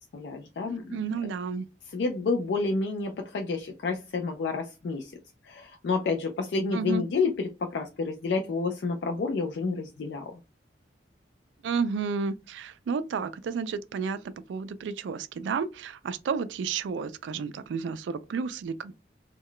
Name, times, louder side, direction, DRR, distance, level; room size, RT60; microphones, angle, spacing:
voice 1, 0.1-1.0 1.9-5.1 5.4-10.4, left 4 dB, 70° left, 0.4 m, -29 dB
voice 2, 0.9-1.6 6.7-7.0 11.6-18.9, right 5 dB, 80° right, 0.3 m, -31 dB
2.2 x 2.1 x 3.6 m
head